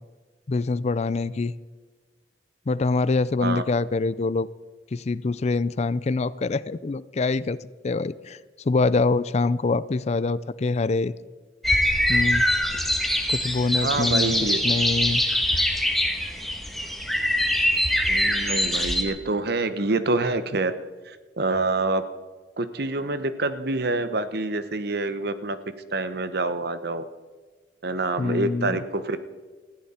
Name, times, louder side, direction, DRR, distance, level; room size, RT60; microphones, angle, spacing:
voice 1, 0.5-1.5 2.7-4.5 4.9-7.6 7.8-8.4 8.6-11.1 12.1-12.4 13.3-14.3 14.6-15.2 28.2-28.8, left 3 dB, 40° left, 18 dB, 0.4 m, -24 dB
sound 1, 11.6-19.0, left 1 dB, ahead, 1.4 m, -23 dB
voice 2, 13.8-14.6 18.1-20.7 21.1-22.0 22.6-25.6 25.9-27.1 27.8-29.2, right 2 dB, 65° right, 12 dB, 1.0 m, -26 dB
20.0 x 14.5 x 4.3 m, 1.4 s
head